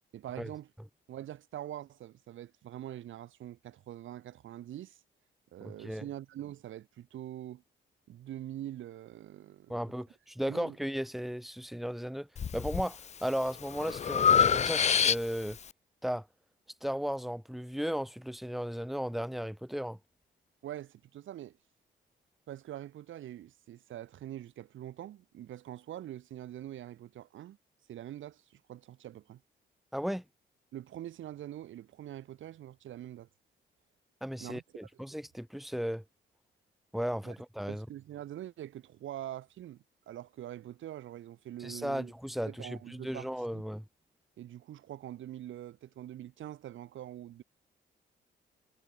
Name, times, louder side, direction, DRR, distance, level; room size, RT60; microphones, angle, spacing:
voice 1, 0.1-0.7 1.1-5.0 5.5-7.6 8.1-9.8 10.5-10.8 20.6-21.6 22.5-27.6 27.9-29.4 30.7-33.3 34.4-34.6 34.9-35.0 37.2-37.4 37.7-42.1 42.5-43.6 44.4-47.4, right 12 dB, 75° right, 7.3 m, -44 dB
voice 2, 9.7-12.3 12.5-15.6 16.0-16.3 16.8-20.0 29.9-30.2 34.2-36.0 36.9-37.9 41.6-43.8, equal, ahead, 4.6 m, -35 dB
Breathing, 12.4-12.9 13.3-15.6, left 7 dB, 35° left, 0.5 m, -26 dB
cardioid pair, 90°, 20 cm